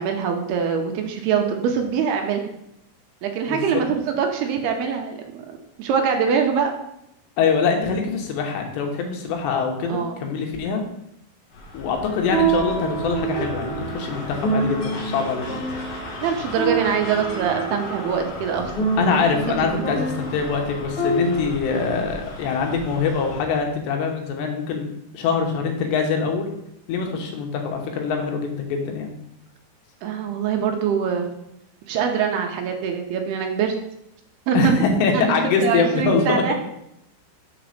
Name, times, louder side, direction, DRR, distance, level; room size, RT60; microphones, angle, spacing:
voice 1, 0.0-2.5 3.2-6.7 9.9-10.2 16.2-18.7 19.6-20.0 30.0-31.3 31.9-33.7 34.5-34.8 35.1-35.4 35.6-36.5, right 6 dB, 80° right, 4 dB, 2.6 m, -23 dB
voice 2, 3.5-3.8 7.4-10.8 11.7-15.5 19.0-24.9 25.1-26.5 26.9-29.1 34.5-36.4, left 5 dB, 85° left, 3 dB, 3.3 m, -23 dB
sound 1, 11.5-23.6, left 2 dB, 65° left, 1.6 m, -37 dB
sound 2, 12.0-21.5, right 3 dB, 50° left, 1.9 m, -27 dB
6.9 x 4.1 x 6.5 m, 0.78 s
omnidirectional pair, 4.9 m